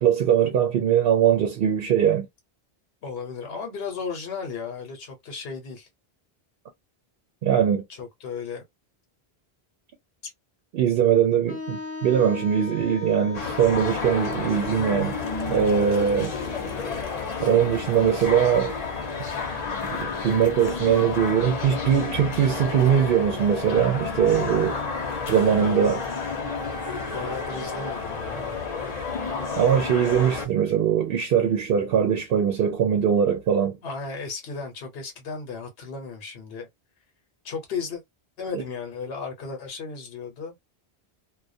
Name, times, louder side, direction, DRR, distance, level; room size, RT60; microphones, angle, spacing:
voice 1, 0.0-2.3 7.4-7.8 10.7-15.2 15.5-16.3 17.4-18.7 20.0-24.8 25.3-26.0 29.6-33.8 38.5-38.6, right 8 dB, 70° right, 0.7 m, -21 dB
voice 2, 3.0-5.9 7.9-8.6 10.2-10.3 25.0-25.1 25.4-26.1 27.1-28.6 33.8-36.7 37.4-38.0 38.4-40.5, left 5 dB, 75° left, 1.0 m, -35 dB
Wind instrument woodwind instrument, 11.5-17.2, left 4 dB, 20° left, 0.4 m, -38 dB
sound 1, 13.3-30.5, left 4 dB, 45° left, 0.7 m, -31 dB
2.2 x 2.2 x 2.5 m
omnidirectional pair, 1.1 m